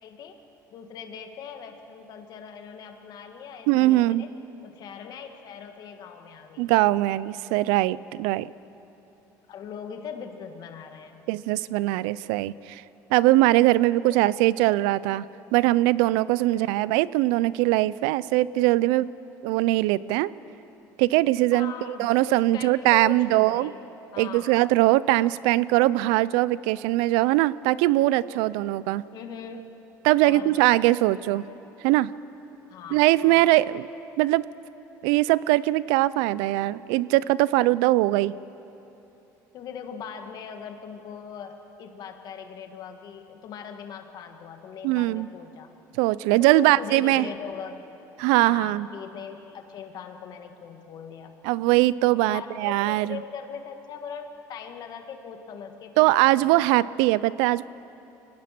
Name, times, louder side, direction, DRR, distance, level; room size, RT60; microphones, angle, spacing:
voice 1, 0.0-0.4 0.7-4.3 4.6-6.8 9.5-11.2 14.1-14.2 16.5-16.7 21.5-23.8 24.1-24.6 25.2-25.4 29.1-29.7 30.2-30.7 32.7-33.5 39.5-45.7 46.3-47.9 48.4-51.4 52.2-56.7, left 7 dB, 55° left, 6 dB, 2.0 m, -40 dB
voice 2, 3.7-4.2 6.6-8.5 11.3-12.8 13.1-15.2 15.5-19.1 19.4-20.3 21.0-21.7 22.0-23.7 24.2-29.0 30.0-31.5 31.8-32.1 32.9-33.9 34.2-34.5 35.0-38.4 44.8-45.3 46.0-47.3 48.2-48.9 51.4-53.2 56.0-57.6, right 17 dB, 90° right, 19 dB, 0.4 m, -21 dB
23.5 x 18.5 x 6.0 m, 3.0 s
cardioid pair, 105°, 8 cm